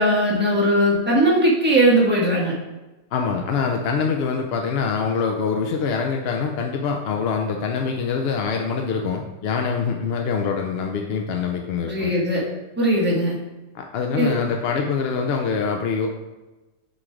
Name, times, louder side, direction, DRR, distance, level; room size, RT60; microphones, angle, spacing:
voice 1, 0.0-2.5 11.8-12.4 12.8-13.3 14.2-14.4, right 1 dB, 10° right, -5 dB, 1.3 m, -19 dB
voice 2, 3.1-12.1 13.7-16.1, left 5 dB, 65° left, 2 dB, 0.6 m, -24 dB
6.1 x 3.2 x 4.7 m, 1.1 s
omnidirectional pair, 1.4 m